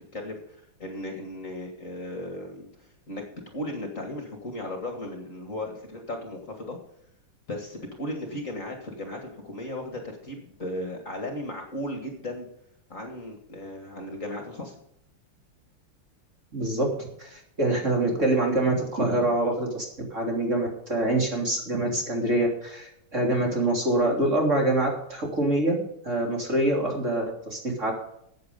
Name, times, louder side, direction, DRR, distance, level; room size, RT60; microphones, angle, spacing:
voice 1, 0.1-6.8 7.5-12.5 12.9-14.8, left 1 dB, 35° left, 3 dB, 2.3 m, -36 dB
voice 2, 16.5-16.9 17.2-25.8 26.0-27.9, right 1 dB, 35° right, 0 dB, 3.5 m, -25 dB
14.0 x 8.6 x 5.3 m, 0.74 s
omnidirectional pair, 2.4 m